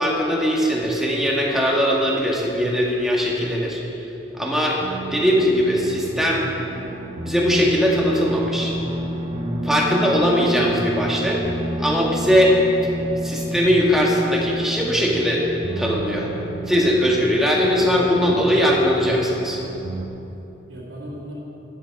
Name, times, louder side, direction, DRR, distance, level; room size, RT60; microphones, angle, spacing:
voice 1, 0.0-3.8 4.3-4.8 5.1-6.5 7.2-8.7 9.6-11.4 11.8-12.6 13.2-15.4 15.8-16.3 16.7-19.6, equal, ahead, -3 dB, 1.6 m, -20 dB
sound 1, 4.8-20.1, right 1 dB, 30° right, 1.1 m, -30 dB
voice 2, 19.7-21.3, right 1 dB, 85° right, -10 dB, 2.4 m, -40 dB
12.5 x 10.0 x 4.7 m, 2.9 s
head